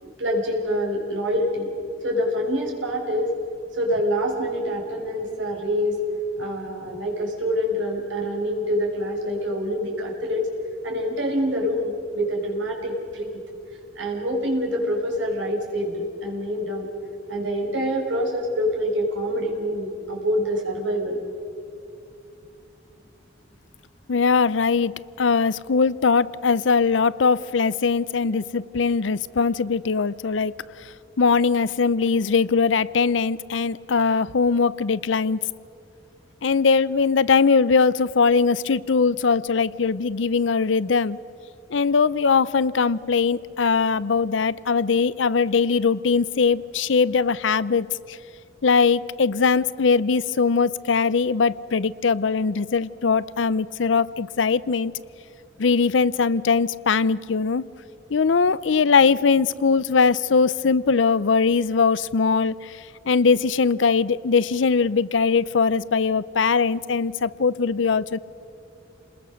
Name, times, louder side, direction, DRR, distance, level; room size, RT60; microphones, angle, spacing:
voice 1, 0.0-1.7 2.0-3.3 3.7-6.0 6.4-10.5 10.8-13.3 13.9-16.9 17.3-21.2, equal, 85° right, 1 dB, 5.0 m, -26 dB
voice 2, 24.1-35.4 36.4-41.2 41.7-48.2 48.6-54.9 55.6-57.6 58.1-68.2, left 5 dB, 80° left, 19 dB, 0.6 m, -21 dB
29.5 x 20.5 x 6.4 m, 2.7 s
head